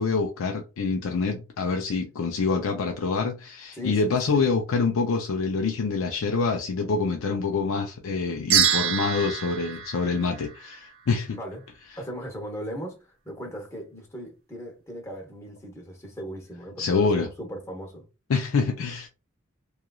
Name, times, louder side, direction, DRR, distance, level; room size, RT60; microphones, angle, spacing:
voice 1, 0.0-11.4 16.8-17.3 18.3-19.1, left 4 dB, 90° left, 0.4 m, -26 dB
sound 1, 8.5-11.0, right 9 dB, 85° right, 0.6 m, -26 dB
voice 2, 12.0-18.0, equal, 15° left, 0.8 m, -38 dB
2.9 x 2.3 x 2.3 m
head